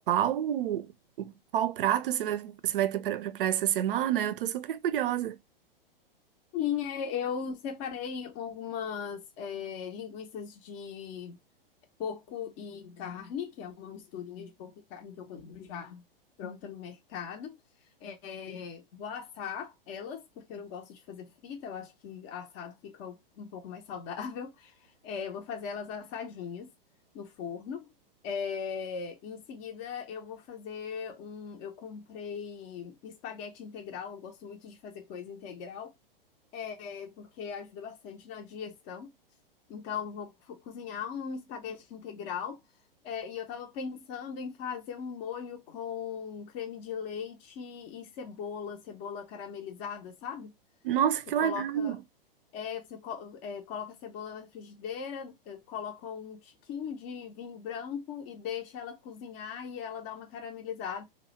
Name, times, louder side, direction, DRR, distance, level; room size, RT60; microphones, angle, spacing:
voice 1, 0.1-0.9 1.2-5.4 50.8-52.0, right 10 dB, 65° right, 0.5 m, -28 dB
voice 2, 6.5-11.4 12.0-16.0 16.4-17.6 18.0-24.7 25.0-26.7 27.1-27.9 28.2-35.9 36.5-39.1 39.7-42.6 43.0-50.5 51.4-52.0 52.5-61.0, left 7 dB, 35° left, 0.5 m, -39 dB
2.3 x 2.1 x 2.9 m
hypercardioid pair, 110°, 29 cm